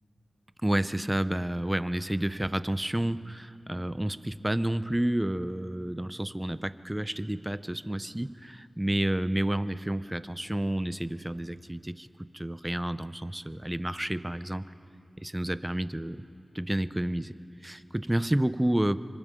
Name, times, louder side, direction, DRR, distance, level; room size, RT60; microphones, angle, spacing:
voice 1, 0.6-12.1 12.3-14.6 15.2-16.2 16.5-17.3 17.6-19.0, right 1 dB, 15° right, 13 dB, 0.6 m, -30 dB
29.0 x 25.5 x 3.8 m, 2.7 s
cardioid pair, 55°, 0 cm